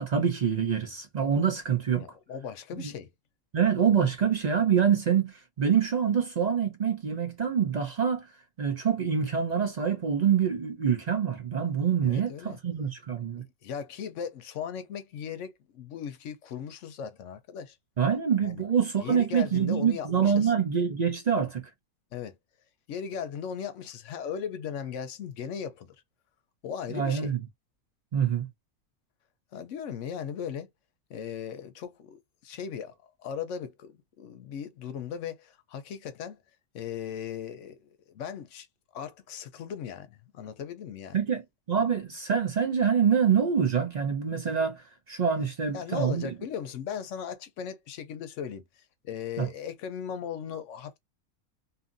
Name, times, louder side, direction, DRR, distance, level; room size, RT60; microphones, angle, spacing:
voice 1, 0.0-2.1 2.7-2.9 3.5-8.3 8.6-13.4 18.0-21.6 26.9-27.4 28.1-28.5 41.1-46.3 49.4-49.5, right 7 dB, 80° right, 0.3 m, -26 dB
voice 2, 2.0-3.1 12.0-12.6 13.6-17.8 18.4-18.6 19.0-20.5 22.1-22.4 22.9-25.9 26.6-27.3 29.5-30.7 31.1-32.9 33.2-36.4 36.7-38.7 38.9-41.2 45.7-51.0, left 7 dB, 65° left, 0.9 m, -37 dB
2.8 x 2.5 x 2.5 m
omnidirectional pair, 1.5 m